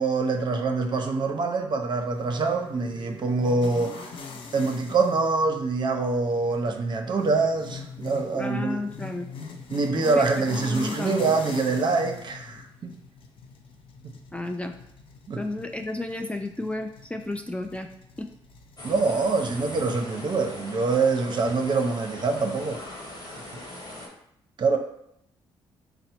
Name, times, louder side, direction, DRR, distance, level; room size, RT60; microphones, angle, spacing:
voice 1, 0.0-4.1 4.5-8.8 9.7-13.0 14.0-14.1 15.3-15.4 18.8-22.8 23.2-23.4 24.6-24.8, right 3 dB, 50° right, 5 dB, 0.6 m, -25 dB
sound 1, 2.1-19.4, left 4 dB, 60° left, 0.6 m, -42 dB
voice 2, 8.3-9.3 10.1-11.2 14.3-14.7 15.4-17.9 18.2-18.3, left 2 dB, 10° left, 5 dB, 0.4 m, -32 dB
sound 2, 18.8-24.1, left 1 dB, 45° left, 1.3 m, -40 dB
3.9 x 2.1 x 4.3 m, 0.74 s
supercardioid pair, 65°, 10 cm